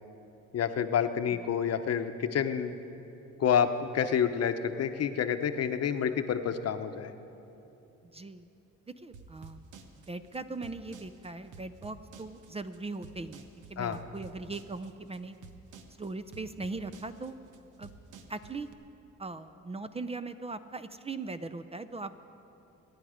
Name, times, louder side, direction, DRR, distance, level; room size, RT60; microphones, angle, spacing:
voice 1, 0.5-2.8 3.4-7.1 13.8-14.0, left 8 dB, 55° left, 9 dB, 0.9 m, -28 dB
voice 2, 8.1-8.5 9.0-9.6 10.0-13.4 13.7-15.4 16.0-17.3 17.8-17.9 18.3-18.7 19.2-22.1, right 3 dB, 20° right, 11 dB, 0.5 m, -39 dB
sound 1, 9.1-18.7, right 5 dB, 85° right, 1.1 m, -51 dB
24.0 x 10.0 x 5.0 m, 2.9 s
cardioid pair, 90°, 30 cm